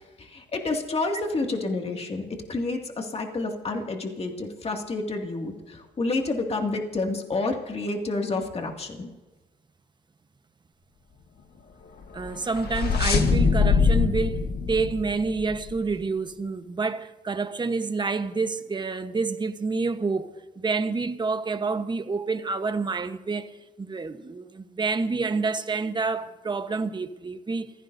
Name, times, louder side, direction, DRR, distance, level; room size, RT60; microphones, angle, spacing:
voice 1, 0.2-9.1, left 3 dB, 35° left, 2.3 m, -29 dB
sound 1, 12.1-15.8, left 5 dB, 65° left, 1.6 m, -23 dB
voice 2, 12.1-27.7, right 4 dB, 25° right, 1.1 m, -28 dB
29.0 x 15.5 x 2.7 m
cardioid pair, 100°, 18 cm